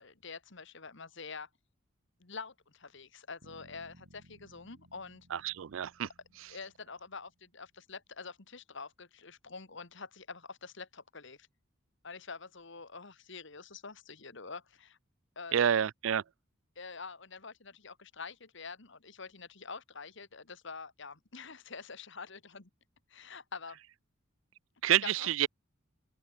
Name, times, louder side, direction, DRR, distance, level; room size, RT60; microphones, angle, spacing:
voice 1, 0.0-1.5 2.2-5.3 6.5-11.5 12.0-15.0 15.4-15.6 16.8-22.7 23.1-23.8 25.0-25.3, left 4 dB, 60° left, 1.9 m, -46 dB
sound 1, 3.4-7.4, equal, 90° right, 6.6 m, -61 dB
voice 2, 5.3-6.1 15.5-16.2 24.8-25.5, right 9 dB, 70° right, 0.4 m, -28 dB
open air
head